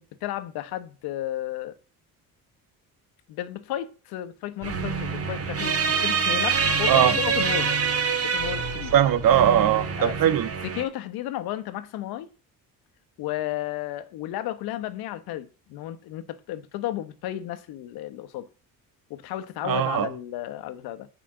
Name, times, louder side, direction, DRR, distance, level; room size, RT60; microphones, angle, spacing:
voice 1, 0.0-1.8 3.3-7.7 8.2-8.9 10.0-10.2 10.6-12.3 13.2-18.5 19.1-21.1, left 13 dB, 90° left, 1.1 m, -33 dB
sound 1, 4.6-10.8, right 5 dB, 40° right, 2.4 m, -26 dB
voice 2, 8.9-10.5 19.6-20.1, right 10 dB, 65° right, 1.4 m, -20 dB
8.2 x 5.1 x 7.6 m
cardioid pair, 100°, 36 cm